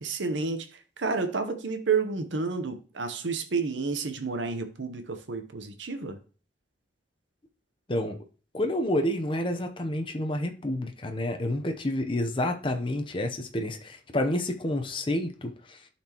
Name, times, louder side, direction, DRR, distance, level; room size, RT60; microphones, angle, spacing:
voice 1, 0.0-6.2, right 4 dB, 85° right, 0.9 m, -30 dB
voice 2, 8.5-15.9, left 1 dB, 30° left, 0.7 m, -29 dB
12.0 x 4.3 x 2.9 m
head